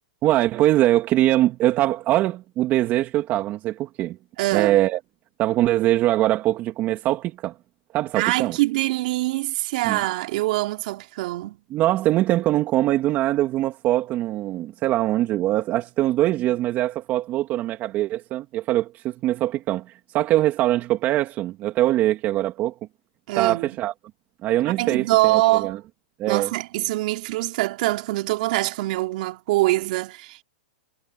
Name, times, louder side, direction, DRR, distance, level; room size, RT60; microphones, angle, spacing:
voice 1, 0.2-4.2 4.5-5.0 5.4-7.6 7.9-8.6 9.8-10.0 11.7-22.7 23.3-23.9 24.4-25.8 26.2-26.5, right 14 dB, 35° right, 2.4 m, -22 dB
voice 2, 4.4-4.8 8.1-11.6 23.3-23.7 24.6-25.8 26.3-30.4, right 19 dB, 55° right, 3.6 m, -24 dB
hypercardioid pair, 135°, 5 cm